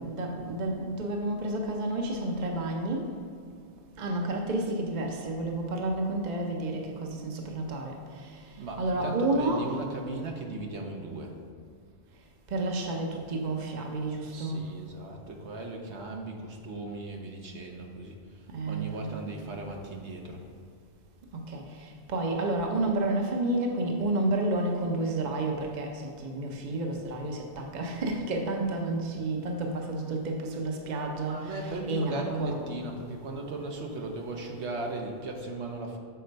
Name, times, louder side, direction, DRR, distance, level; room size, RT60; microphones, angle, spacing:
voice 1, 0.0-3.1 4.0-9.8 12.5-14.7 18.5-19.2 21.3-32.6, right 2 dB, 45° right, 1 dB, 0.8 m, -31 dB
voice 2, 8.6-11.4 14.3-20.5 31.2-36.0, right 2 dB, 70° right, 1 dB, 1.1 m, -37 dB
6.7 x 4.4 x 5.2 m, 2.2 s
omnidirectional pair, 1.2 m